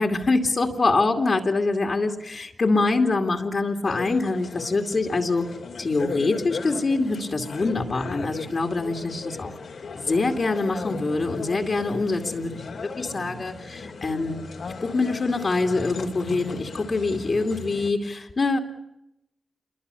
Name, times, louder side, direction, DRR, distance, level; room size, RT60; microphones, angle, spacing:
voice 1, 0.0-5.4 5.8-9.6 9.9-18.6, left 3 dB, 50° left, 2 dB, 2.5 m, -25 dB
sound 1, 3.8-17.9, left 4 dB, 75° left, 2.8 m, -37 dB
27.5 x 22.5 x 7.0 m, 0.86 s
cardioid pair, 65°, 0 cm